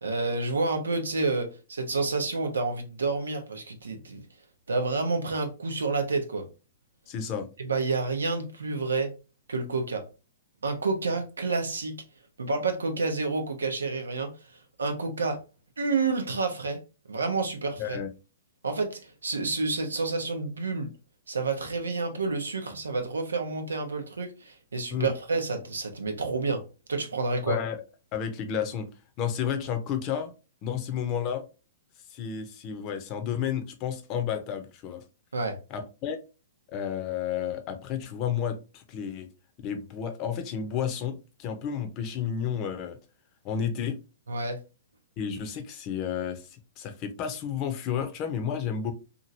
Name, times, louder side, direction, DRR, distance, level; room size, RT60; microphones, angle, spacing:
voice 1, 0.0-4.2 4.7-6.5 7.6-9.1 9.5-10.0 10.6-12.0 12.4-14.3 14.8-15.4 15.8-16.8 17.1-18.0 18.6-20.9 21.3-26.6 26.9-27.6 35.3-35.6 44.3-44.6, right 3 dB, 90° right, 0.8 m, -29 dB
voice 2, 7.1-7.5 17.8-18.1 24.9-25.1 27.5-27.8 28.1-28.9 29.2-30.3 30.6-31.4 32.1-35.0 35.7-36.2 36.7-39.3 39.6-43.0 43.4-44.0 45.2-48.9, left 8 dB, 35° left, 0.7 m, -31 dB
2.9 x 2.5 x 2.6 m
hypercardioid pair, 125°, 0 cm